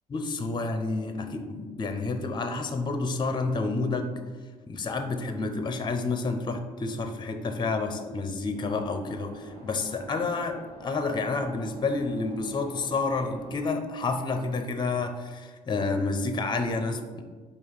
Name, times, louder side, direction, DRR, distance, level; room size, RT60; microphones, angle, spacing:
voice 1, 0.1-4.1 4.7-17.2, left 3 dB, 25° left, 7 dB, 0.5 m, -29 dB
sound 1, 8.5-13.6, right 1 dB, 35° right, 1.3 m, -48 dB
4.6 x 2.9 x 3.9 m, 1.5 s
hypercardioid pair, 50°, 20 cm